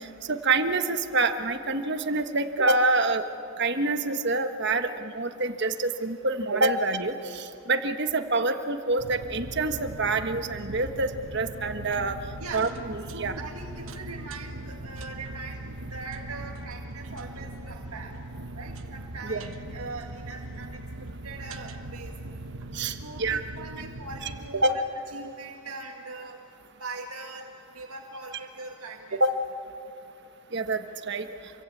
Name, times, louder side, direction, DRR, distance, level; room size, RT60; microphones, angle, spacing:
voice 1, 0.0-3.2 3.6-12.2 12.5-13.3 19.2-19.4 22.7-23.4 24.2-24.3 24.6-24.8 29.2-29.4 30.5-31.3, right 2 dB, 50° right, 8 dB, 1.4 m, -26 dB
sound 1, 9.0-24.5, right 1 dB, 70° right, 1.3 m, -40 dB
voice 2, 12.4-12.7 13.1-18.1 18.6-20.8 21.2-22.1 23.0-24.8 25.1-26.4 26.8-29.2, right 3 dB, 90° right, 1 dB, 2.0 m, -41 dB
27.0 x 24.5 x 8.6 m, 2.6 s
head